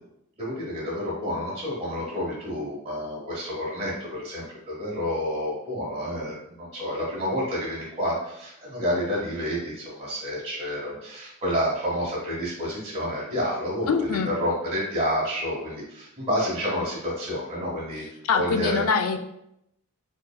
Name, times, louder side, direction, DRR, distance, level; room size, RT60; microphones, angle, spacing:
voice 1, 0.4-18.0 18.3-18.9, equal, 30° right, -8 dB, 1.3 m, -29 dB
voice 2, 13.9-14.3 18.2-19.2, left 5 dB, 75° left, 8 dB, 0.4 m, -23 dB
4.6 x 3.1 x 2.2 m, 0.80 s
head